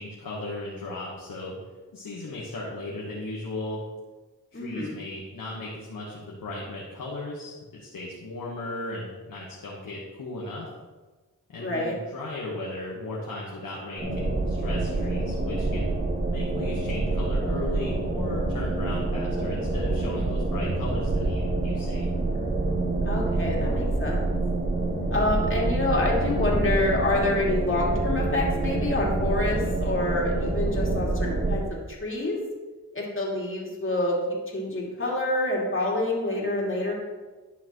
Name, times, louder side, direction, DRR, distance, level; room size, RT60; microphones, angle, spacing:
voice 1, 0.0-1.5 1.9-3.8 4.5-10.7 11.5-15.9 16.3-22.1, left 2 dB, 90° left, -5 dB, 1.3 m, -36 dB
voice 2, 4.5-4.9 11.6-12.0 23.0-24.2 25.1-32.4 32.9-36.9, left 2 dB, 40° left, -3 dB, 2.6 m, -27 dB
sound 1, 14.0-31.6, right 2 dB, 30° right, 2.5 m, -27 dB
11.0 x 5.8 x 3.1 m, 1.3 s
cardioid pair, 50°, 33 cm